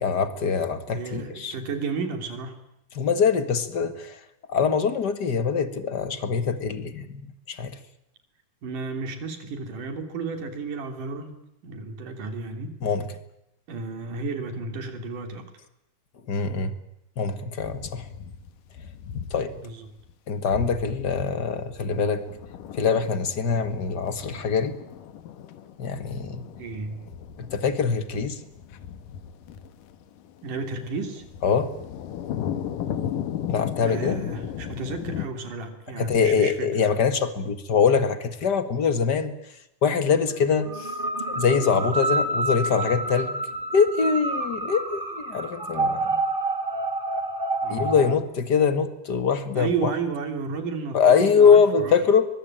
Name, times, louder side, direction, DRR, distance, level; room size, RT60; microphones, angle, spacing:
voice 1, 0.0-1.6 2.9-4.2 4.5-7.2 7.5-7.8 12.8-13.0 16.3-16.7 17.2-18.0 19.3-19.5 20.3-22.2 22.8-24.8 25.8-26.4 27.5-28.4 31.4-31.7 33.5-34.2 36.0-39.3 39.8-40.9 41.3-43.3 43.7-46.2 47.7-49.9 50.9-52.3, left 6 dB, 40° left, 11 dB, 1.8 m, -23 dB
voice 2, 0.9-2.6 8.6-12.8 13.7-15.5 19.5-19.9 26.6-27.1 30.4-31.2 33.8-36.7 47.6-48.0 49.6-52.0, right 4 dB, 75° right, 7 dB, 4.7 m, -32 dB
sound 1, 17.6-19.6 20.0-20.1 20.5-35.3, left 9 dB, 80° left, 2.9 m, -36 dB
sound 2, 40.6-48.1, right 2 dB, 20° right, 2.1 m, -28 dB
23.0 x 22.0 x 9.0 m, 0.84 s
omnidirectional pair, 3.8 m